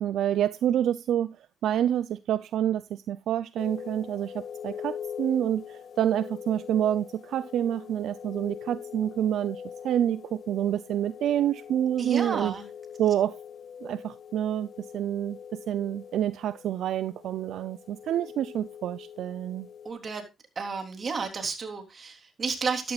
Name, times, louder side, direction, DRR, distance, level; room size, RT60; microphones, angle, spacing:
voice 1, 0.0-1.4 1.6-12.5 13.0-13.4 13.8-15.4 15.7-19.7, right 10 dB, 75° right, 0.5 m, -28 dB
sound 1, 3.6-19.9, left 8 dB, 55° left, 1.5 m, -43 dB
voice 2, 12.0-12.7 19.8-20.2 20.6-22.9, right 5 dB, 40° right, 3.4 m, -32 dB
13.0 x 12.0 x 2.4 m
cardioid pair, 90°, 0 cm